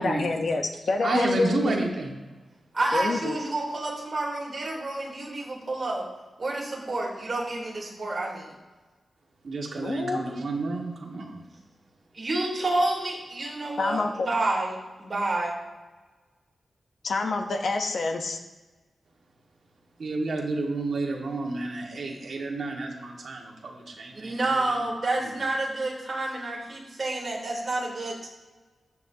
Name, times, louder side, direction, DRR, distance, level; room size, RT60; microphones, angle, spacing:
voice 1, 0.0-1.8 2.9-3.4 9.8-10.2 13.8-14.3 17.0-18.4, left 3 dB, 55° left, 4 dB, 1.1 m, -27 dB
voice 2, 1.0-2.1 9.4-11.5 20.0-24.8 25.2-25.3, right 2 dB, 55° right, -1 dB, 2.0 m, -30 dB
voice 3, 2.7-6.1 6.4-8.5 12.1-14.7 15.0-15.5 24.2-28.3, right 2 dB, 30° right, -4 dB, 3.7 m, -29 dB
15.0 x 9.9 x 2.9 m, 1.2 s
wide cardioid pair, 160°, 0 cm